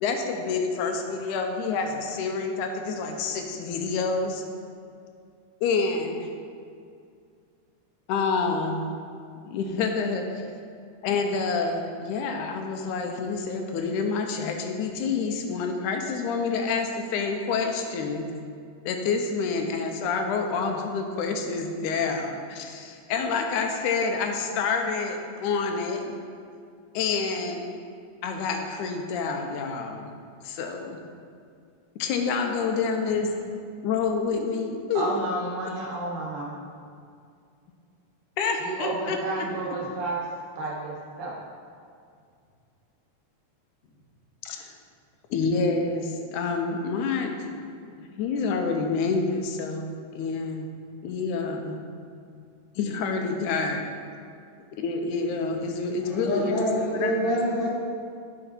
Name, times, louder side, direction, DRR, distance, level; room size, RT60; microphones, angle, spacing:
voice 1, 0.0-4.4 5.6-6.3 8.1-8.9 9.5-10.5 11.0-18.3 18.9-26.2 26.9-27.8 28.2-30.1 30.4-31.0 32.0-33.3 33.8-35.1 38.4-39.5 44.4-44.7 45.3-47.4 47.8-50.7 51.0-51.8 52.8-53.8 54.8-56.6 57.0-57.3, left 4 dB, 80° left, 4 dB, 2.1 m, -28 dB
voice 2, 34.9-36.6 38.6-40.2 40.6-41.4, right 2 dB, 80° right, -5 dB, 2.9 m, -31 dB
voice 3, 56.0-57.7, equal, 60° left, -5 dB, 2.5 m, -27 dB
8.7 x 5.5 x 4.3 m, 2.3 s
omnidirectional pair, 3.5 m